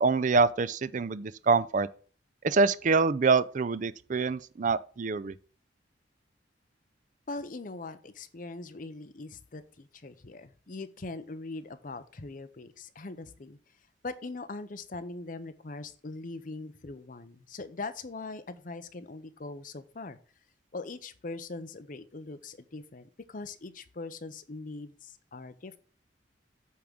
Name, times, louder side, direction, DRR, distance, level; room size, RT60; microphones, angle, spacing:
voice 1, 0.0-1.9 2.4-5.4, right 4 dB, 45° right, 0.4 m, -25 dB
voice 2, 7.3-13.6 14.0-20.2 20.7-25.8, left 3 dB, 45° left, 0.7 m, -41 dB
8.5 x 3.7 x 6.1 m
head